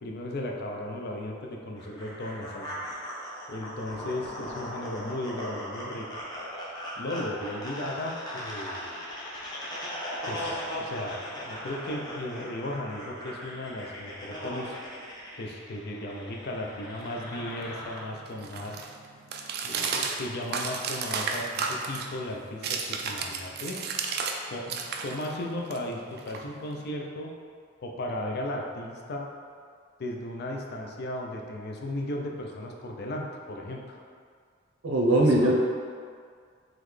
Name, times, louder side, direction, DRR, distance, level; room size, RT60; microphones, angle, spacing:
voice 1, 0.0-2.7 3.5-6.1 7.0-9.0 10.3-11.2 11.5-14.8 15.4-18.8 19.6-23.8 24.5-27.3 27.8-29.3 30.0-34.0 35.2-35.5, left 1 dB, 55° left, 0 dB, 0.5 m, -36 dB
sound 1, 1.8-18.0, equal, 20° left, 0.8 m, -38 dB
sound 2, 17.0-24.4 24.7-26.9, right 5 dB, 55° right, 0.3 m, -34 dB
voice 2, 34.8-35.5, right 1 dB, 80° right, -3 dB, 0.7 m, -20 dB
3.9 x 3.1 x 3.2 m, 2.1 s
head